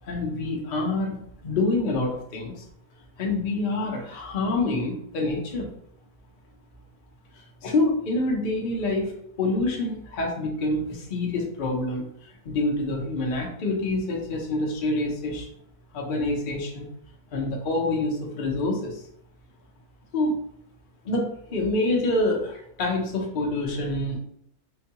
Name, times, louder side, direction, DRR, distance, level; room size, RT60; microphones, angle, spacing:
voice 1, 0.0-2.6 3.2-5.7 7.3-15.5 15.9-16.9 17.3-19.0 20.1-20.4 21.0-24.2, left 2 dB, 45° left, -1 dB, 0.8 m, -27 dB
4.4 x 2.2 x 2.8 m, 0.70 s
omnidirectional pair, 1.6 m